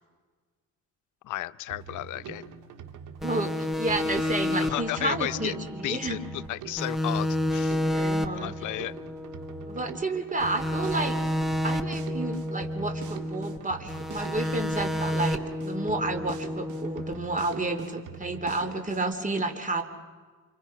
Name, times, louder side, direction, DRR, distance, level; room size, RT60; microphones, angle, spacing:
voice 1, 1.2-2.4 4.7-5.5 5.8-6.2 6.5-7.8 8.4-8.9, left 16 dB, 80° left, 0.7 m, -33 dB
Drum kit, 1.7-19.1, right 7 dB, 80° right, 2.5 m, -44 dB
sound 1, 3.2-6.5 6.8-10.0 10.4-13.6 13.9-17.1, left 1 dB, ahead, 1.4 m, -30 dB
voice 2, 3.2-6.2 7.9-8.5 9.7-11.2 11.6-19.8, right 2 dB, 25° right, 3.3 m, -31 dB
29.5 x 25.5 x 5.8 m
cardioid pair, 90°, 30 cm